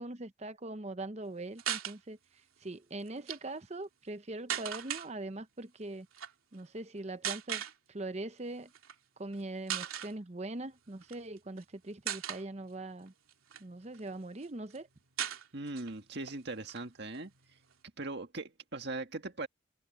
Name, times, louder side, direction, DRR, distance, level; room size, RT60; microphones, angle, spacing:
voice 1, 0.0-2.2 2.6-6.1 6.5-7.6 7.9-8.7 9.2-13.1 13.6-14.9, right 2 dB, 30° right, 0.8 m, -41 dB
sound 1, 1.6-2.0 3.1-3.4 4.5-5.1 6.1-6.3 7.2-7.7 8.7-8.9 9.3-9.4 9.7-10.1 11.0-11.6 12.1-12.4 13.1-14.1 14.4-14.5 14.7-14.8 15.2-15.9 16.3-16.4 16.6-17.7, right 10 dB, 90° right, 2.9 m, -37 dB
voice 2, 15.5-17.3 18.0-19.5, right 2 dB, 55° right, 2.0 m, -40 dB
head